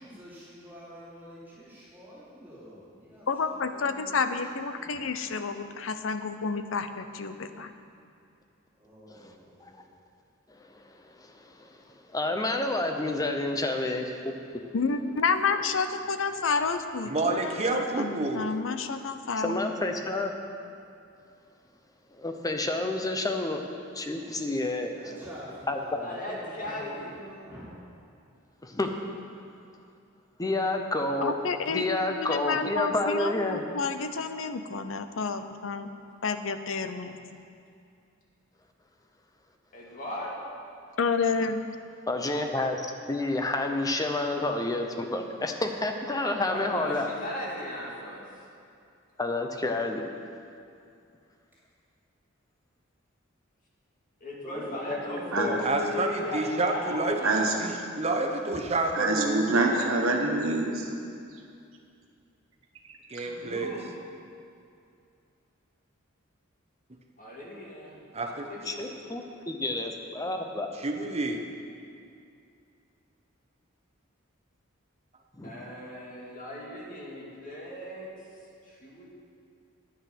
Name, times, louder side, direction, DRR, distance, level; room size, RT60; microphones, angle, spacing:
voice 1, 0.0-4.4 4.7-5.0 8.8-9.9 14.8-15.5 15.9-16.5 24.9-27.7, equal, 10° right, -10 dB, 2.9 m, -48 dB
voice 2, 3.3-7.7 14.7-19.6 31.2-35.9 36.2-37.2 41.0-41.6, left 4 dB, 70° left, 9 dB, 0.6 m, -30 dB
voice 3, 10.5-10.8 11.1-11.8 12.1-14.3 19.4-20.3 22.1-23.6 23.9-24.9 25.7-26.0 28.6-28.9 30.4-31.3 31.7-33.6 42.1-47.1 49.2-50.1 54.4-55.6 68.7-70.7 75.4-75.5, left 2 dB, 20° left, 4 dB, 0.8 m, -29 dB
voice 4, 17.0-18.5 55.6-57.2 57.6-57.7 58.0-59.6 63.1-63.7 68.1-68.4 70.8-71.4, right 2 dB, 30° right, 3 dB, 0.9 m, -28 dB
voice 5, 26.0-27.2 39.7-40.3 46.2-48.4 54.2-57.5 63.2-63.9 67.2-69.1 75.4-78.1 78.6-79.1, left 1 dB, 40° left, -4 dB, 2.2 m, -37 dB
voice 6, 57.2-57.6 58.9-60.9 63.1-63.3, right 2 dB, 85° right, 1 dB, 1.4 m, -26 dB
9.9 x 9.2 x 5.9 m, 2.5 s
head